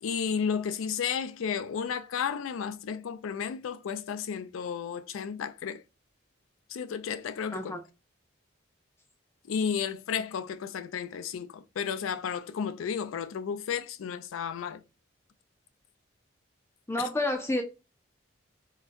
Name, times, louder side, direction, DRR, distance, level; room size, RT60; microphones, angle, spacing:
voice 1, 0.0-5.8 6.7-7.7 9.4-14.8 17.0-17.1, left 7 dB, 90° left, 0.4 m, -33 dB
voice 2, 16.9-17.6, left 1 dB, 10° left, 0.4 m, -29 dB
3.8 x 2.1 x 2.5 m
head